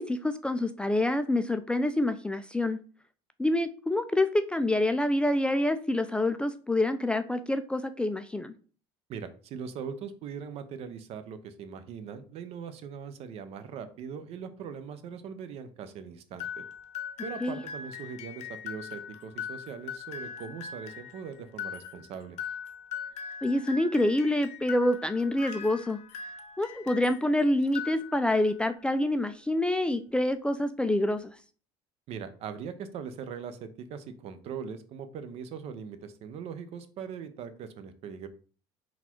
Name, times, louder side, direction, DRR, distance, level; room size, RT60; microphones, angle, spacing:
voice 1, 0.0-2.8 3.4-8.5 17.4-17.6 23.4-26.0 26.6-31.3, left 1 dB, 10° left, 9 dB, 0.3 m, -27 dB
voice 2, 9.1-16.6 17.2-22.4 32.1-38.3, right 6 dB, 55° right, 10 dB, 0.6 m, -40 dB
sound 1, 16.4-27.3 27.6-28.5, left 7 dB, 60° left, 0.7 m, -41 dB
4.0 x 2.3 x 4.4 m, 0.40 s
supercardioid pair, 95°, 12 cm